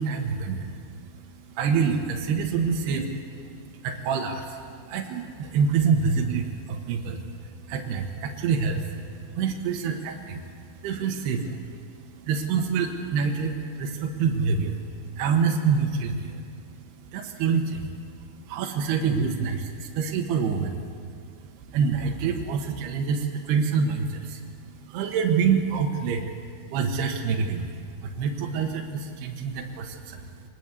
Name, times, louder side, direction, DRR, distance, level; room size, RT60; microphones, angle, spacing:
voice 1, 0.0-20.9 21.5-30.3, right 5 dB, 75° right, 2 dB, 3.3 m, -27 dB
23.0 x 20.5 x 8.3 m, 2.2 s
omnidirectional pair, 4.9 m